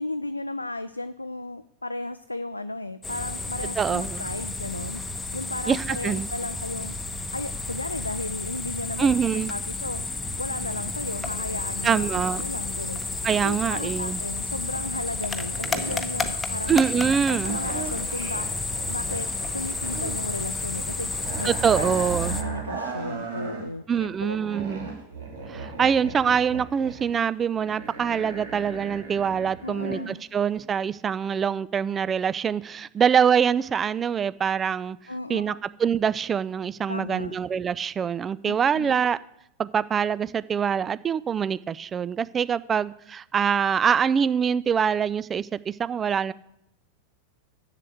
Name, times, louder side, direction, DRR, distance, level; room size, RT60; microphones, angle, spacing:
voice 1, 0.0-5.0 5.3-7.0 7.3-9.2 9.5-10.0 10.4-13.0 13.4-16.8 17.3-18.5 18.9-21.1 21.4-24.4 29.6-30.2 35.1-35.6 36.9-37.4 38.4-39.0, left 2 dB, 85° left, 10 dB, 0.4 m, -34 dB
sound 1, 3.0-22.4, left 3 dB, 10° left, 1.0 m, -31 dB
voice 2, 3.8-4.3 5.7-6.3 9.0-9.5 11.8-12.4 13.2-14.2 16.7-17.6 21.4-22.4 23.9-24.9 25.5-35.0 35.3-35.5 35.8-39.2 39.6-46.3, right 7 dB, 20° right, 18 dB, 0.4 m, -24 dB
sound 2, 14.7-15.2 15.5-16.1 17.4-20.2 20.4-23.6 24.0-30.1 30.5-30.6, right 5 dB, 60° right, 2.6 m, -37 dB
7.5 x 7.5 x 8.2 m, 0.79 s
figure-of-eight pair, 90°, 0 cm